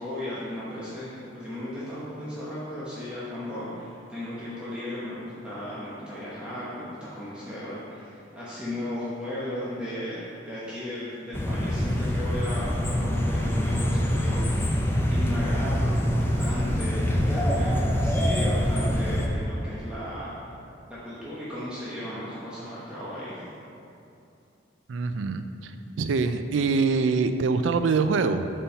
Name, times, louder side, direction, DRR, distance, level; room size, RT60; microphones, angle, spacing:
voice 1, 0.0-20.3 20.9-23.5, left 1 dB, 5° right, -10 dB, 0.9 m, -36 dB
sound 1, 11.3-19.3, equal, 15° left, 0.5 m, -25 dB
voice 2, 24.9-28.5, right 4 dB, 80° right, 9 dB, 0.4 m, -24 dB
5.4 x 4.3 x 5.5 m, 2.7 s
head